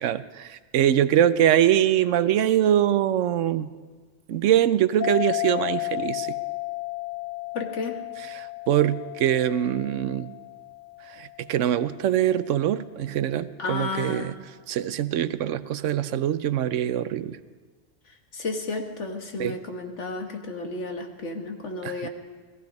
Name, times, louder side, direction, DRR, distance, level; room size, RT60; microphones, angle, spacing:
voice 1, 0.0-3.7 4.3-6.4 8.3-10.3 11.0-14.3 14.7-17.4 19.4-19.6 21.8-22.1, right 11 dB, 85° right, 14 dB, 1.0 m, -23 dB
sound 1, 5.0-12.0, left 17 dB, 15° left, 3.4 m, -33 dB
voice 2, 7.5-8.0 13.6-14.3 18.1-22.1, left 3 dB, 70° left, 4 dB, 1.8 m, -32 dB
18.0 x 14.5 x 5.2 m, 1.4 s
omnidirectional pair, 1.3 m